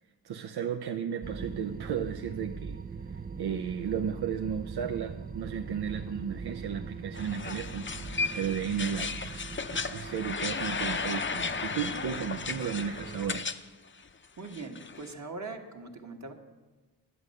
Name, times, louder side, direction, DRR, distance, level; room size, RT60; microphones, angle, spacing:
voice 1, 0.2-13.5, right 7 dB, 70° right, 6 dB, 0.6 m, -34 dB
sound 1, 1.2-13.4, right 5 dB, 25° right, 0.4 m, -41 dB
sound 2, 7.1-13.6 13.9-15.1, left 4 dB, 30° left, 0.6 m, -35 dB
voice 2, 14.4-16.3, right 3 dB, 45° right, 3 dB, 1.5 m, -41 dB
11.0 x 8.4 x 6.5 m, 1.2 s
cardioid pair, 65°, 41 cm